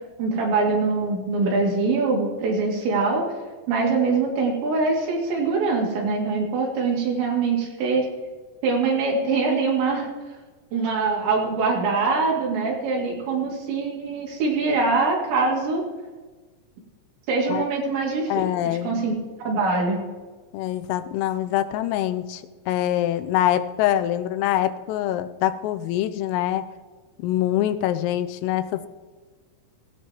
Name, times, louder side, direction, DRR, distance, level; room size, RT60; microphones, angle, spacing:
voice 1, 0.2-3.2 3.7-8.1 8.6-10.1 10.7-15.8 17.3-18.4 18.8-20.0, right 4 dB, 65° right, -2 dB, 4.5 m, -23 dB
voice 2, 18.3-19.1 20.5-26.7 27.2-28.9, left 12 dB, 85° left, 11 dB, 3.2 m, -24 dB
16.5 x 16.5 x 3.0 m, 1.3 s
omnidirectional pair, 6.0 m